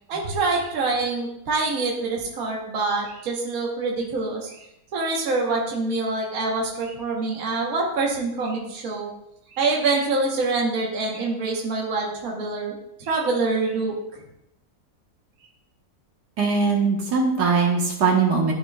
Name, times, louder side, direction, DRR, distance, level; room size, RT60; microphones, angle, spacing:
voice 1, 0.1-4.7 4.9-9.1 9.5-12.7 13.0-13.9, right 3 dB, 60° right, -1 dB, 1.5 m, -25 dB
voice 2, 16.4-18.5, right 4 dB, 80° right, -1 dB, 1.8 m, -21 dB
13.0 x 4.5 x 2.3 m, 0.83 s
omnidirectional pair, 1.7 m